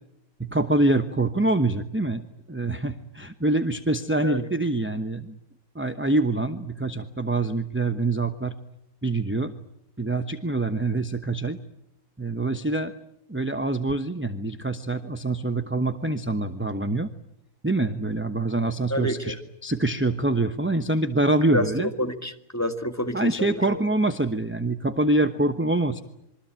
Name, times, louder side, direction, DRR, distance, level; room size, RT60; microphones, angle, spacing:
voice 1, 0.4-2.2 2.5-5.4 5.7-8.6 9.0-9.5 10.0-11.6 12.2-12.9 13.3-17.1 17.6-19.3 19.6-21.9 23.1-26.0, right 2 dB, 10° right, 0.8 m, -25 dB
voice 2, 18.9-19.4 21.5-21.7 22.0-23.8, left 1 dB, 10° left, 1.7 m, -29 dB
26.5 x 23.5 x 8.9 m
omnidirectional pair, 1.7 m